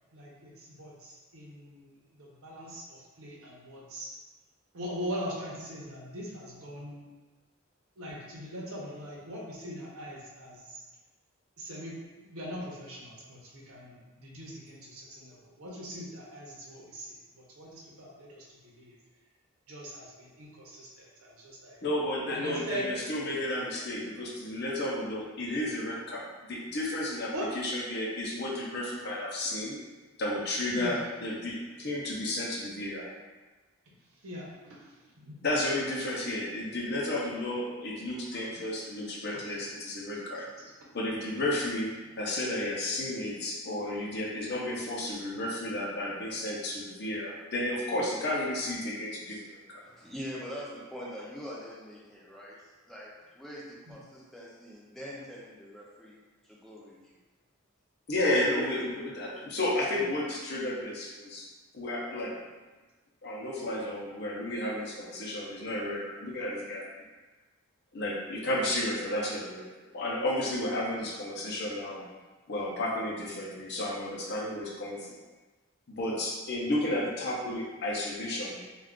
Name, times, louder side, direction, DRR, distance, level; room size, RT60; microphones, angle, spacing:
voice 1, 0.1-4.1 4.7-7.0 8.0-10.8 11.6-18.9 19.7-21.8 22.3-22.8 27.3-27.5 30.7-31.0 34.2-34.8 35.2-35.4 38.3-38.6 40.6-40.7 53.9-54.0, equal, 90° right, -4 dB, 0.8 m, -41 dB
voice 2, 21.8-29.8 30.2-33.1 35.4-40.5 40.9-41.9 42.2-49.8 58.1-61.5 61.7-62.3 63.2-66.9 67.9-69.6 69.9-72.0 72.5-75.2 75.9-78.8, left 1 dB, 50° left, -4 dB, 0.6 m, -32 dB
voice 3, 49.8-56.2 56.4-57.1 59.4-59.5, equal, ahead, -6 dB, 0.4 m, -43 dB
2.4 x 2.3 x 3.6 m, 1.2 s
head